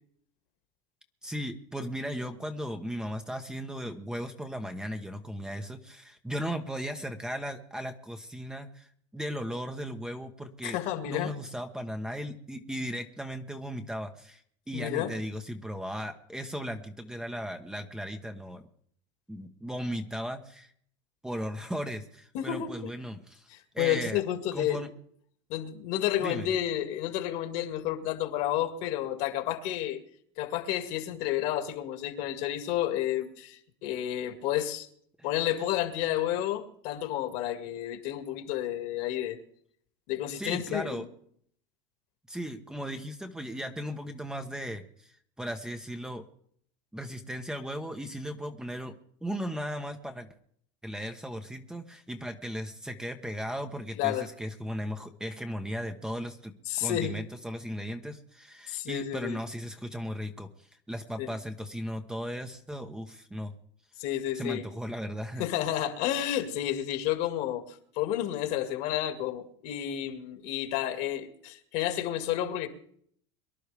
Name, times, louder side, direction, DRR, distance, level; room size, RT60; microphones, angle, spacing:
voice 1, 1.2-10.8 11.1-14.4 14.7-18.6 19.3-20.7 21.2-24.2 24.5-24.9 26.2-26.5 40.4-41.1 42.3-46.3 46.9-48.9 49.2-50.3 50.8-63.5 64.3-65.4, equal, 5° right, 1.0 m, -36 dB
voice 2, 10.6-11.3 14.7-15.1 22.3-22.9 23.5-24.8 25.5-30.0 30.4-34.9 35.2-39.4 40.1-41.1 54.0-54.3 56.7-57.2 58.7-59.4 61.2-61.3 64.0-64.7 65.4-72.7, left 12 dB, 60° left, 2.1 m, -31 dB
23.5 x 11.0 x 3.5 m
supercardioid pair, 130°, 15 cm